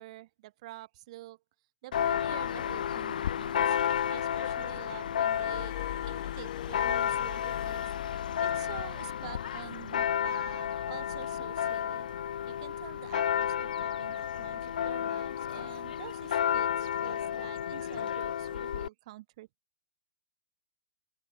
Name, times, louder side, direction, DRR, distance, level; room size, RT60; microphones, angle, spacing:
voice 1, 0.0-1.4 1.8-3.8 4.1-5.7 6.0-7.9 8.4-12.1 12.5-19.5, right 17 dB, 50° right, 5.7 m, -48 dB
Church bell, 1.9-18.9, left 9 dB, 75° left, 0.7 m, -32 dB
Glass, 5.2-8.8 9.8-10.0, left 23 dB, 45° left, 5.2 m, -44 dB
open air
hypercardioid pair, 145°, 5 cm